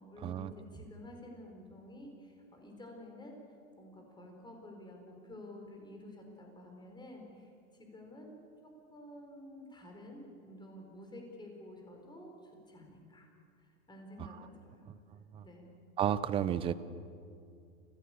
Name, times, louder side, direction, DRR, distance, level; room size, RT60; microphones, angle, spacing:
voice 1, 0.0-3.4 3.8-8.4 8.6-13.3 13.6-14.9 15.4-15.7, left 1 dB, 10° left, 2 dB, 4.8 m, -51 dB
voice 2, 16.0-16.7, right 10 dB, 15° right, 16 dB, 0.5 m, -31 dB
29.5 x 16.0 x 8.6 m, 2.4 s
supercardioid pair, 145°, 41 cm